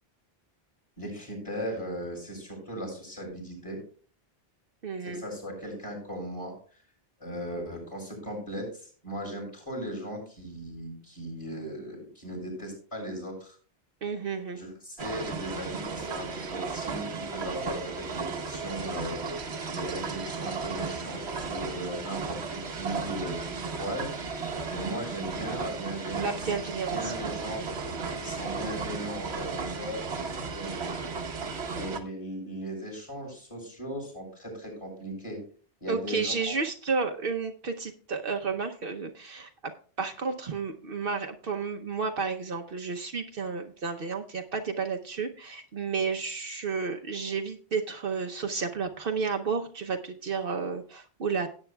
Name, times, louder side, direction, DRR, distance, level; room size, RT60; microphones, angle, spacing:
voice 1, 1.0-3.8 5.0-6.8 7.2-13.6 14.5-19.5 19.7-24.4 24.7-27.8 28.2-30.0 30.3-30.7 31.7-35.4 35.8-36.5, equal, 30° left, -3 dB, 6.2 m, -38 dB
voice 2, 4.8-5.2 14.0-14.6 26.2-27.5 35.9-39.7 40.0-51.5, right 5 dB, 60° right, 4 dB, 1.0 m, -32 dB
sound 1, 15.0-32.0, right 4 dB, 85° right, 1.3 m, -35 dB
17.0 x 8.7 x 2.2 m, 0.42 s
omnidirectional pair, 1.1 m